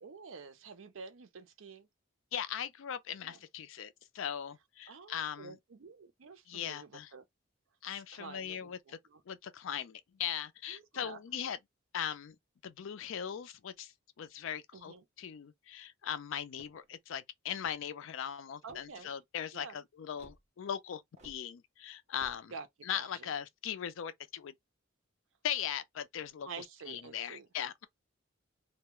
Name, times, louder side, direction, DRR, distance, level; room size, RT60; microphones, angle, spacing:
voice 1, 0.0-1.9 3.2-3.4 4.9-7.2 7.9-9.2 10.7-11.2 14.7-15.0 18.6-19.1 19.5-19.8 22.5-22.7 22.9-23.3 26.4-27.5, right 5 dB, 75° right, 0.6 m, -49 dB
voice 2, 2.3-5.6 6.5-7.1 7.8-9.0 9.3-11.6 11.9-12.4 12.6-13.9 14.2-22.5 22.8-24.5 25.4-27.9, left 9 dB, 70° left, 0.4 m, -39 dB
sound 1, 16.5-16.9 17.5-18.0 18.6-19.1 20.2-20.4 21.2-21.4 22.1-22.4, right 1 dB, 35° right, 0.7 m, -58 dB
2.2 x 2.1 x 2.9 m
head